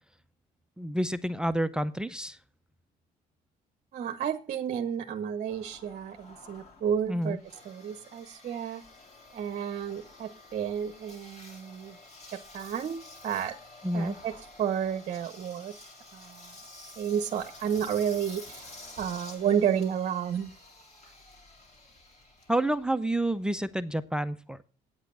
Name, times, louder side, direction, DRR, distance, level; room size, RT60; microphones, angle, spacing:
voice 1, 0.8-2.4 7.1-7.4 13.8-14.2 22.5-24.6, right 1 dB, 5° right, 15 dB, 0.5 m, -29 dB
voice 2, 3.9-7.4 7.6-8.8 9.3-12.0 12.3-13.5 13.9-14.3 14.6-15.7 16.1-16.5 17.0-18.7 19.0-20.5, right 8 dB, 50° right, 9 dB, 0.9 m, -31 dB
Engine, 5.5-23.9, left 2 dB, 40° left, 3.4 m, -50 dB
8.9 x 8.2 x 6.1 m, 0.37 s
cardioid pair, 110°, 17 cm